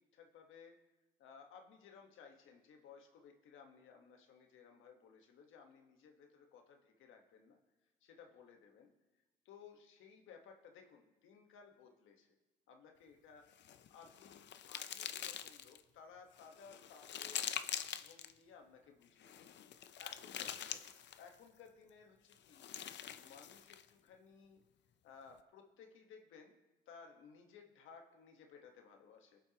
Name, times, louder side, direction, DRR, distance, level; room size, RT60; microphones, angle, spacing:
voice 1, 0.1-0.8 1.2-7.6 8.0-8.9 9.4-12.3 12.7-13.5 13.9-20.8 21.2-22.7 23.2-24.6 25.0-26.5 26.9-29.5, left 6 dB, 85° left, 3 dB, 1.4 m, -59 dB
sound 1, 13.5-15.8 16.4-18.3 19.2-21.3 22.3-23.9, left 10 dB, 65° left, 0.7 m, -45 dB
20.5 x 7.7 x 2.9 m, 1.1 s
cardioid pair, 90°, 20 cm